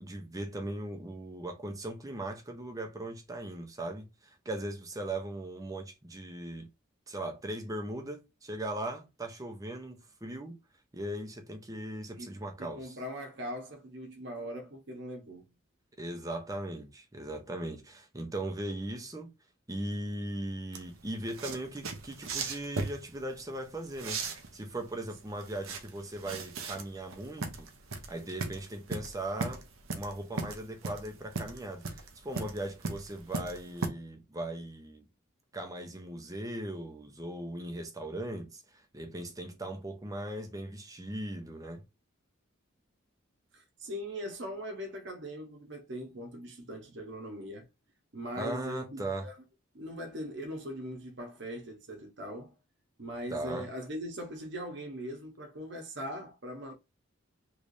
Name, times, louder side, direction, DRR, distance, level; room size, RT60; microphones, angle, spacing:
voice 1, 0.0-6.7 7.1-10.6 10.9-13.0 16.0-19.3 19.7-27.7 28.1-29.7 29.9-35.1 35.5-41.8 48.4-49.3 53.3-53.7, right 1 dB, 15° right, 0.7 m, -39 dB
voice 2, 12.1-15.5 43.5-47.7 48.1-49.3 49.7-52.6 53.0-56.7, equal, 60° right, 1.0 m, -40 dB
sound 1, 20.7-33.9, right 3 dB, 85° right, 0.7 m, -38 dB
3.2 x 3.2 x 2.6 m
head